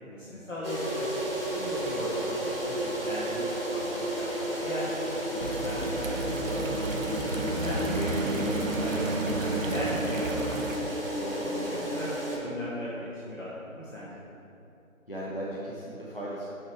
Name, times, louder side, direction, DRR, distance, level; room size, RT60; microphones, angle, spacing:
voice 1, 0.1-1.1 1.5-2.4 2.7-4.9 5.3-7.4 7.6-10.8 11.4-12.1 12.4-14.1, left 1 dB, 65° left, -7 dB, 1.3 m, -37 dB
sound 1, 0.6-12.4, right 1 dB, 45° right, 1.1 m, -32 dB
sound 2, 5.4-10.8, right 2 dB, 70° right, 0.7 m, -33 dB
voice 2, 6.0-6.4 11.2-11.8 15.1-16.5, equal, 40° left, -6 dB, 0.7 m, -37 dB
8.5 x 3.1 x 4.7 m, 2.8 s
figure-of-eight pair, 170°, 41 cm